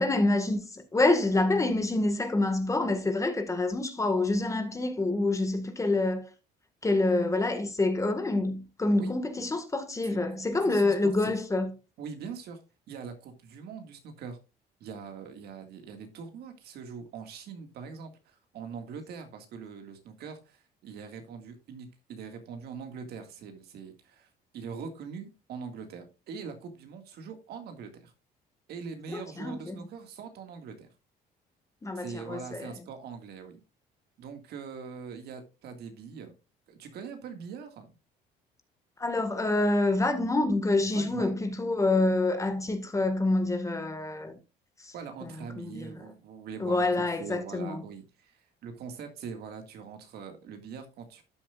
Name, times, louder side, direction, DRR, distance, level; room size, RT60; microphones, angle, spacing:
voice 1, 0.0-6.3 6.8-11.7 29.1-29.8 31.8-32.7 39.0-44.4 44.8-44.9 45.2-46.0 46.6-47.8, left 2 dB, 20° left, 1.7 m, -27 dB
voice 2, 10.0-11.4 12.0-12.6 12.9-14.4 14.8-28.1 28.7-30.9 32.0-33.6 34.2-36.3 36.7-37.9 40.9-41.3 44.9-51.2, right 6 dB, 70° right, 2.0 m, -42 dB
12.5 x 7.5 x 2.4 m
cardioid pair, 110°, 17 cm